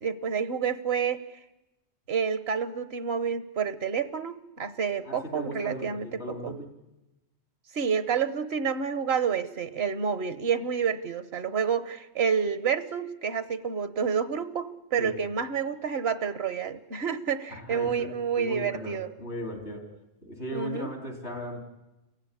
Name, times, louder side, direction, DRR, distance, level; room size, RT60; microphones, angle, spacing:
voice 1, 0.0-1.2 2.1-6.5 7.7-19.1 20.5-20.9, right 7 dB, 75° right, 13 dB, 1.3 m, -29 dB
voice 2, 5.0-6.7 15.0-15.2 17.5-18.1 18.3-19.9 20.2-21.6, equal, 90° left, 3 dB, 3.8 m, -37 dB
28.0 x 16.0 x 9.8 m, 1.0 s
omnidirectional pair, 1.1 m